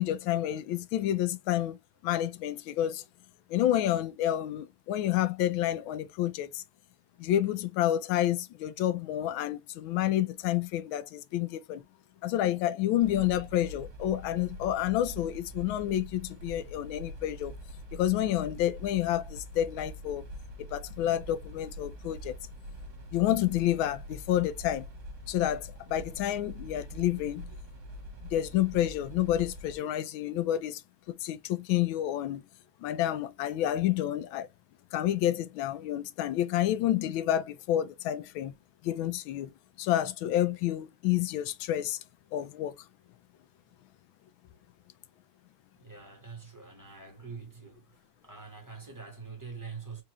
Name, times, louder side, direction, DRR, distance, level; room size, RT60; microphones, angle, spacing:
voice 1, 0.0-3.0 3.5-6.6 7.2-11.8 12.2-17.6 17.9-20.2 20.7-22.3 23.1-24.8 25.3-27.5 28.3-30.8 31.1-32.4 32.8-34.5 34.9-38.5 38.8-39.5 39.8-42.0 42.3-42.7, left 12 dB, 80° left, 1.4 m, -29 dB
sound 1, 13.0-29.8, equal, 65° right, 2.2 m, -44 dB
voice 2, 45.7-50.0, right 5 dB, 10° right, 1.3 m, -45 dB
4.8 x 2.8 x 3.0 m
omnidirectional pair, 2.2 m